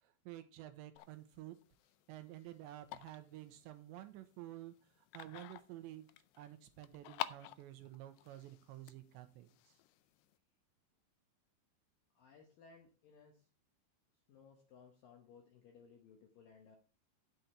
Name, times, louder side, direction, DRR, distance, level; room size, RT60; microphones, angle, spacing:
voice 1, 0.0-1.6 2.1-4.7 5.1-6.1 6.4-9.7, right 14 dB, 80° right, 9 dB, 2.8 m, -51 dB
sound 1, 1.0-10.4, left 14 dB, 90° left, 2.4 m, -50 dB
voice 2, 12.1-13.5 14.3-16.8, left 5 dB, 70° left, 3 dB, 2.1 m, -61 dB
9.4 x 7.8 x 4.3 m, 0.33 s
omnidirectional pair, 5.5 m